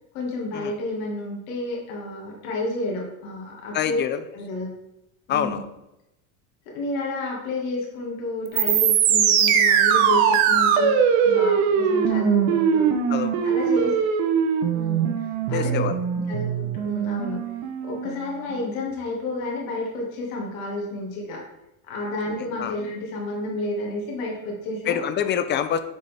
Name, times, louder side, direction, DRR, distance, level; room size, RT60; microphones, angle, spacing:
voice 1, 0.1-4.0 4.3-4.7 5.3-5.6 6.7-11.0 11.3-12.9 13.4-14.0 14.7-15.8 16.3-17.4 17.8-21.4 21.9-25.0, left 2 dB, 85° left, -2 dB, 2.0 m, -30 dB
voice 2, 3.7-4.3 5.3-5.7 13.1-13.9 15.5-16.0 22.3-22.8 24.9-25.8, left 9 dB, 25° left, 11 dB, 0.4 m, -27 dB
sound 1, 8.5-18.5, right 7 dB, 85° right, 0.9 m, -21 dB
6.6 x 4.1 x 3.5 m, 0.89 s
supercardioid pair, 115°, 41 cm